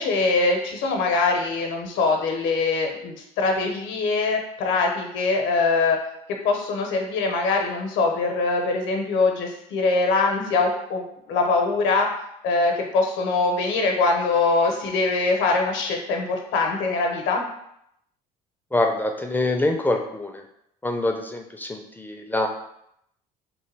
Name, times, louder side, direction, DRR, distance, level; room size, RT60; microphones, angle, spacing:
voice 1, 0.0-6.0 6.4-12.1 12.4-17.4, left 3 dB, 70° left, 2 dB, 0.7 m, -23 dB
voice 2, 18.7-20.4 20.8-22.5, left 2 dB, 10° left, 3 dB, 0.4 m, -25 dB
3.1 x 2.2 x 3.2 m, 0.76 s
supercardioid pair, 75°, 20 cm